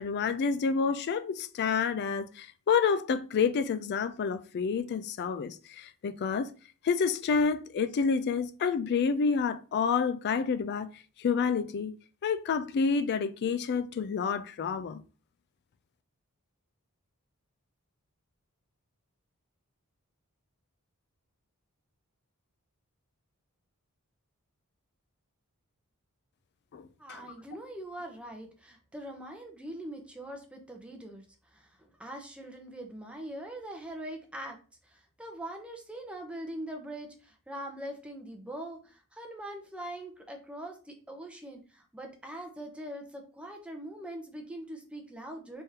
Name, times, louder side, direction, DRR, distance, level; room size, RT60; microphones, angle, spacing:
voice 1, 0.0-6.5 6.8-10.9 11.2-11.9 12.2-15.0 26.7-26.9 27.2-27.3, left 5 dB, 50° left, 0.3 m, -29 dB
voice 2, 27.0-31.2 31.5-34.6 34.9-45.6, right 1 dB, 5° right, 0.7 m, -42 dB
3.6 x 3.5 x 2.8 m
head